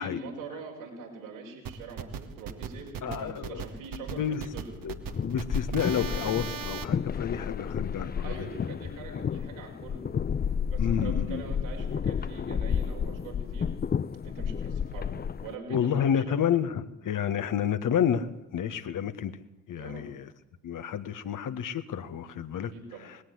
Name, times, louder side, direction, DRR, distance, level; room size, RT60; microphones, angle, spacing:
voice 1, 0.0-4.7 8.2-10.0 10.7-13.7 14.2-15.1 15.4-16.4 19.7-20.1 22.7-23.1, right 4 dB, 80° right, 0 dB, 5.6 m, -43 dB
sound 1, 1.7-6.8, right 7 dB, 55° right, 2.0 m, -38 dB
voice 2, 3.0-3.6 4.1-4.5 4.8-8.7 9.5-9.6 10.8-11.5 15.7-19.4 19.7-20.3 20.6-22.7 23.0-23.2, left 8 dB, 50° left, 11 dB, 1.7 m, -30 dB
sound 2, 4.8-15.6, left 7 dB, 25° left, 0.6 m, -31 dB
20.5 x 17.0 x 8.0 m, 0.90 s
figure-of-eight pair, 45°, 40 cm